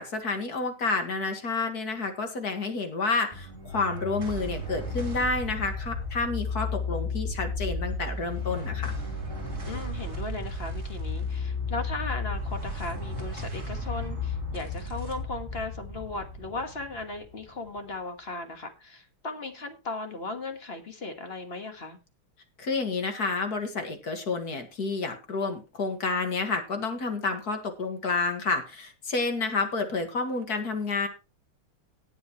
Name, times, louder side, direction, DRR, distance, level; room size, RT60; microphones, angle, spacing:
voice 1, 0.0-8.9 22.6-31.1, left 3 dB, 45° left, 6 dB, 2.2 m, -29 dB
sound 1, 3.3-17.9, left 3 dB, 30° right, 3.6 m, -34 dB
voice 2, 9.6-22.0, left 3 dB, 30° left, 7 dB, 1.6 m, -37 dB
18.5 x 7.2 x 3.1 m, 0.29 s
omnidirectional pair, 2.4 m